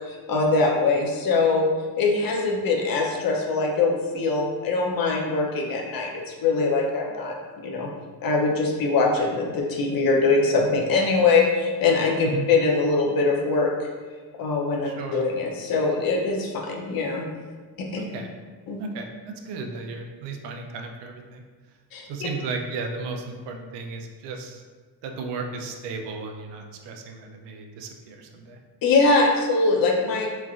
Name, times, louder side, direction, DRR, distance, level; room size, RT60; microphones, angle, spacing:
voice 1, 0.1-1.6 2.0-7.4 7.6-7.9 8.2-13.7 14.4-17.3 17.8-17.9 18.7-18.8 21.9-22.3 28.8-30.3, left 3 dB, 55° left, 0 dB, 0.6 m, -22 dB
voice 2, 12.2-12.5 14.8-15.2 17.9-18.3 18.8-21.4 22.1-24.6 25.0-28.6, right 4 dB, 80° right, 3 dB, 0.5 m, -34 dB
3.2 x 2.5 x 2.4 m, 1.4 s
cardioid pair, 95°, 41 cm